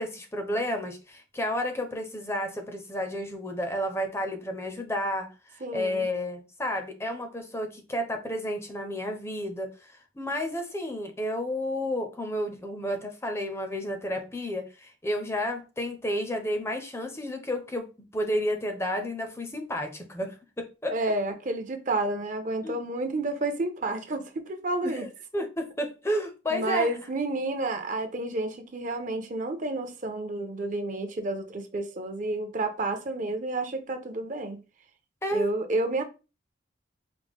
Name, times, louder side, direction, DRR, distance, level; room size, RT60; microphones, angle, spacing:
voice 1, 0.0-21.0 22.6-22.8 24.8-26.9 35.2-35.5, left 1 dB, 15° left, 0.5 m, -31 dB
voice 2, 5.6-6.1 20.9-25.0 26.5-34.6 35.3-36.0, right 2 dB, 40° right, 0.5 m, -30 dB
4.9 x 2.1 x 3.5 m
head